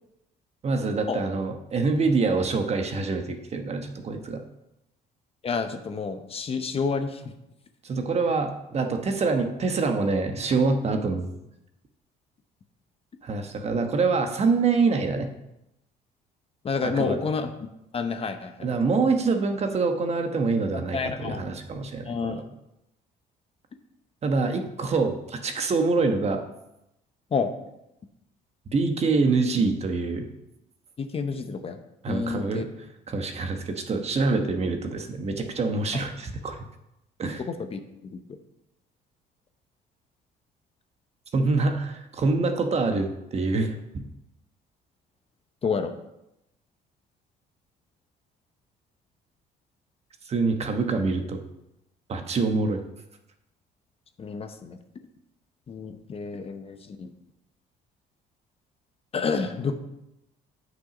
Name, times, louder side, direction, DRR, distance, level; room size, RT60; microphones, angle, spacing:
voice 1, 0.6-4.4 7.8-11.3 13.2-15.3 17.0-17.2 18.6-22.5 24.2-26.4 28.7-30.3 32.0-32.7 33.1-36.6 37.2-37.4 41.3-44.0 50.2-51.4 52.1-52.8, right 4 dB, 40° right, 5 dB, 1.1 m, -25 dB
voice 2, 5.4-7.2 16.6-17.5 17.9-18.7 20.7-21.4 22.1-22.4 27.3-27.5 31.0-31.8 32.1-32.7 37.5-37.8 38.1-38.2 45.6-45.9 54.2-54.8 55.7-57.1 59.1-59.8, left 5 dB, 35° left, 7 dB, 0.8 m, -29 dB
8.4 x 6.2 x 5.1 m, 0.87 s
cardioid pair, 110°, 17 cm